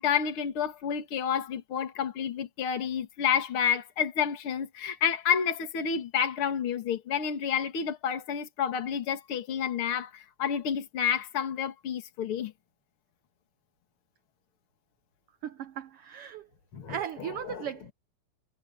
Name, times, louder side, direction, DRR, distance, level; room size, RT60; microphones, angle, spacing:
voice 1, 0.0-12.5 16.7-17.7, left 8 dB, 45° left, 2.8 m, -30 dB
voice 2, 15.4-16.5 16.9-17.9, right 10 dB, 90° right, 1.2 m, -37 dB
omnidirectional pair, 3.5 m